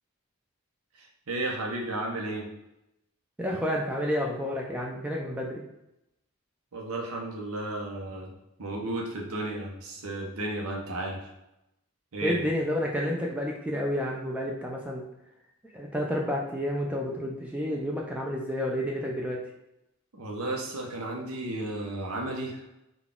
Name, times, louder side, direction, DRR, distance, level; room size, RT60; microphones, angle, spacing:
voice 1, 0.9-2.5 6.7-8.3 8.6-11.3 12.1-12.4 20.1-22.6, right 2 dB, 75° right, 0 dB, 0.8 m, -33 dB
voice 2, 3.4-5.6 12.2-15.0 15.7-19.4, equal, 5° right, -1 dB, 0.3 m, -30 dB
3.8 x 2.3 x 3.6 m, 0.88 s
head